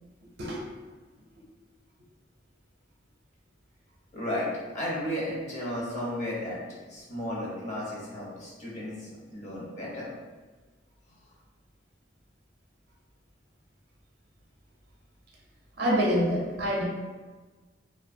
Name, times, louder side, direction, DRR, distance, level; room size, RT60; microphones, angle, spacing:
voice 1, 4.1-6.6 6.9-10.1, left 1 dB, 40° left, -6 dB, 0.8 m, -34 dB
voice 2, 15.8-16.8, equal, 60° right, -2 dB, 0.5 m, -26 dB
2.5 x 2.3 x 2.6 m, 1.3 s
head